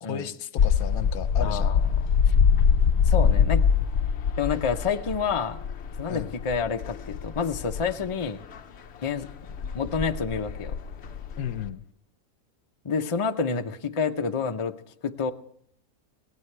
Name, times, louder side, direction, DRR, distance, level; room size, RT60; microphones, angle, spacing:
voice 1, 0.1-1.7 6.1-6.3 11.4-11.8, left 9 dB, 80° left, 13 dB, 1.2 m, -34 dB
sound 1, 0.6-8.6 9.2-11.7, left 7 dB, 55° left, 0.9 m, -24 dB
voice 2, 1.4-1.8 2.3-2.4 3.1-3.6 4.4-5.6 6.0-8.4 9.0-9.3 9.7-10.8 12.8-14.7 15.0-15.3, left 5 dB, 35° left, 6 dB, 0.5 m, -28 dB
20.5 x 17.0 x 3.3 m, 0.67 s
omnidirectional pair, 1.5 m